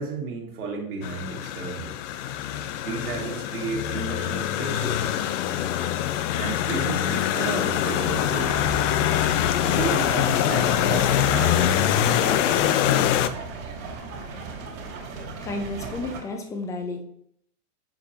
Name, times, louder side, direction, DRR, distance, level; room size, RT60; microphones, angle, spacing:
voice 1, 0.0-1.9 2.8-5.3 6.4-8.8 9.6-13.2, right 4 dB, 85° right, -1 dB, 2.5 m, -33 dB
sound 1, 1.0-13.3, left 11 dB, 55° left, 0.6 m, -24 dB
sound 2, 8.0-16.2, right 4 dB, 65° right, 2.6 m, -37 dB
voice 2, 15.4-17.0, left 2 dB, 10° left, 5 dB, 0.3 m, -32 dB
7.3 x 4.9 x 3.0 m, 0.69 s
hypercardioid pair, 125°, 44 cm